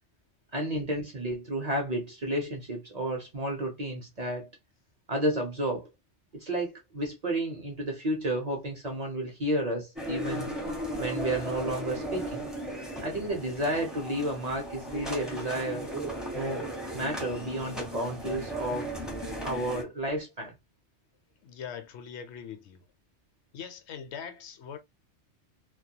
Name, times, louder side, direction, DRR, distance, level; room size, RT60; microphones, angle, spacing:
voice 1, 0.5-4.5 5.1-5.9 6.3-10.5 11.0-12.5 13.0-15.9 16.3-16.6 16.9-18.9 19.4-20.5, right 1 dB, 45° right, 0.6 m, -31 dB
sound 1, 10.0-19.8, equal, ahead, 0.5 m, -36 dB
voice 2, 21.4-22.8 23.5-24.8, left 7 dB, 80° left, 0.9 m, -41 dB
2.2 x 2.2 x 2.7 m
omnidirectional pair, 1.2 m